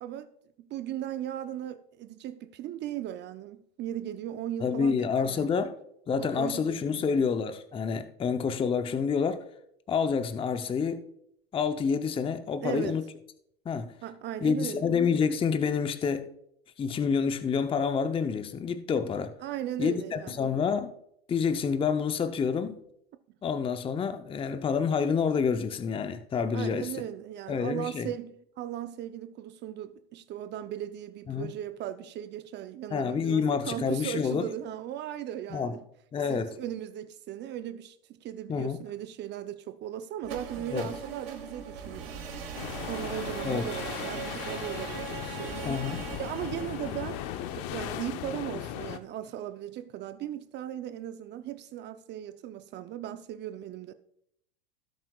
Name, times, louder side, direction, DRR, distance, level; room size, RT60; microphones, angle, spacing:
voice 1, 0.7-5.7 6.2-7.3 12.6-13.0 14.0-15.0 19.4-20.5 26.5-35.8 36.3-42.5 42.9-45.8 46.2-47.2 47.5-53.9, right 11 dB, 35° right, 0.6 m, -37 dB
voice 2, 4.6-5.7 6.1-9.4 9.9-11.0 11.5-13.0 13.7-13.9 14.4-16.3 16.8-19.3 19.8-20.9 21.3-22.8 23.4-26.9 27.5-28.1 31.3-31.5 32.9-34.5 35.5-35.8 36.1-36.5 38.5-38.8 40.7-40.9 43.4-43.7 45.6-46.0, left 6 dB, 20° left, 0.6 m, -28 dB
sound 1, 40.2-48.1, right 6 dB, 80° right, 2.6 m, -40 dB
sound 2, 42.5-49.0, left 11 dB, 50° left, 0.8 m, -37 dB
17.5 x 7.5 x 2.3 m
hypercardioid pair, 105°, 30 cm